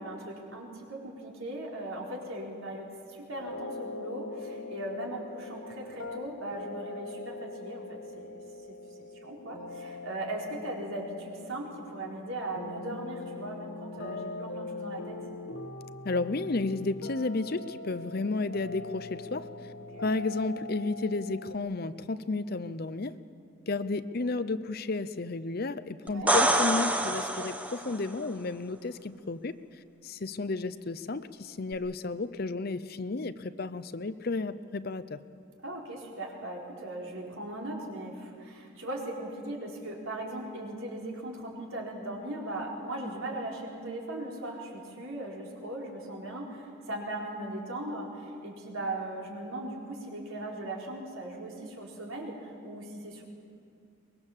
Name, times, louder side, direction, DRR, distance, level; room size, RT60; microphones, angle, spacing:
voice 1, 0.0-8.3 9.0-15.2 19.9-20.1 26.1-26.3 35.6-53.2, right 1 dB, 75° right, -2 dB, 4.3 m, -38 dB
sound 1, 3.4-21.6, left 3 dB, 65° left, 1.4 m, -42 dB
voice 2, 16.0-19.5 20.0-23.1 23.7-29.6 30.0-35.2, left 3 dB, 45° left, 13 dB, 0.6 m, -32 dB
sound 2, 26.1-28.0 31.7-31.8, right 1 dB, 5° right, 0.9 m, -26 dB
23.5 x 21.0 x 7.3 m, 2.4 s
head